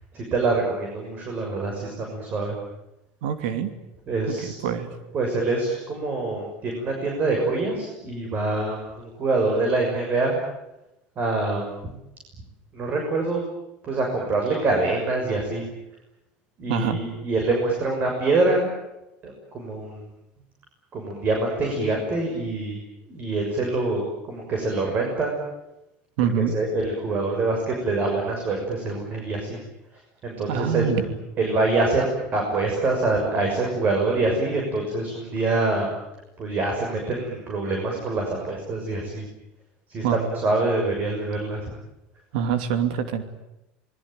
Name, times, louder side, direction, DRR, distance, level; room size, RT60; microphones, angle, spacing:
voice 1, 0.1-2.6 4.1-4.5 5.1-10.4 11.2-11.7 12.7-13.4 13.8-15.7 16.6-18.7 19.2-20.0 20.9-22.8 23.1-25.3 26.3-29.6 30.2-31.1 31.4-32.0 32.3-35.9 36.4-39.2 39.9-41.7, right 2 dB, 35° right, 1 dB, 6.6 m, -25 dB
voice 2, 3.2-3.7 4.3-4.9 16.7-17.0 26.2-26.5 30.5-31.0 40.0-40.2 42.3-43.2, right 8 dB, 85° right, 9 dB, 2.7 m, -25 dB
27.5 x 21.5 x 9.2 m, 0.92 s
cardioid pair, 145°, 5 cm